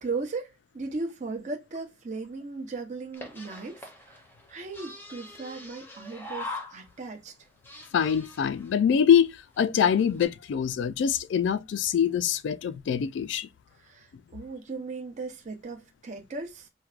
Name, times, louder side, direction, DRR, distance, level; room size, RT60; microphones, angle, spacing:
voice 1, 0.0-4.2 4.5-7.3 13.7-16.7, right 3 dB, 40° right, 0.6 m, -37 dB
sound 1, 3.1-7.1 7.4-8.7 9.3-9.4 9.5-9.6 10.0-10.2, left 2 dB, 10° left, 0.6 m, -42 dB
voice 2, 7.9-13.5, left 8 dB, 70° left, 0.3 m, -24 dB
4.4 x 2.1 x 2.4 m
head